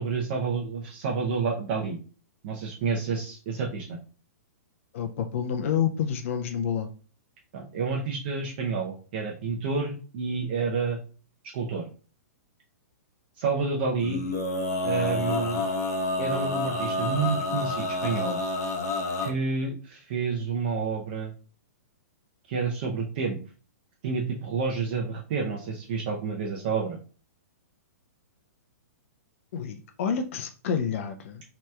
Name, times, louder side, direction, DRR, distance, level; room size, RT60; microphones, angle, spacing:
voice 1, 0.0-2.0 2.4-3.9 7.5-11.0 11.5-11.9 13.4-14.2 14.8-15.6 16.2-18.4 19.2-21.3 22.5-23.4 24.0-27.0, right 5 dB, 40° right, -1 dB, 0.5 m, -29 dB
voice 2, 4.9-6.9 29.5-31.4, left 7 dB, 50° left, 5 dB, 0.3 m, -28 dB
Male singing, 14.0-19.3, left 2 dB, 85° left, 0.8 m, -29 dB
2.8 x 2.2 x 3.2 m, 0.39 s
hypercardioid pair, 165°, 9 cm